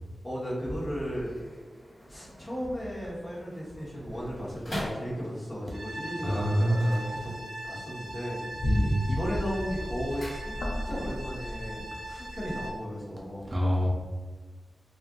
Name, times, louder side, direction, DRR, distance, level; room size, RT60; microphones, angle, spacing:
voice 1, 0.2-1.3 2.1-7.3 7.6-10.5 10.8-13.5, equal, 30° left, -8 dB, 1.0 m, -35 dB
sound 1, 0.6-5.6 6.7-7.8 8.1-8.6 8.9-11.0 11.3-11.4, equal, 50° left, 1.3 m, -43 dB
sound 2, 5.7-5.9 6.3-6.7 7.0-7.4 7.8-12.8, left 1 dB, 70° left, 0.4 m, -35 dB
sound 3, 5.7-12.7, right 1 dB, 70° right, 0.8 m, -40 dB
voice 2, 6.2-6.9 8.6-9.1 13.5-13.9, equal, 25° right, -3 dB, 0.4 m, -25 dB
2.8 x 2.4 x 2.4 m, 1.5 s
wide cardioid pair, 125°, 0 cm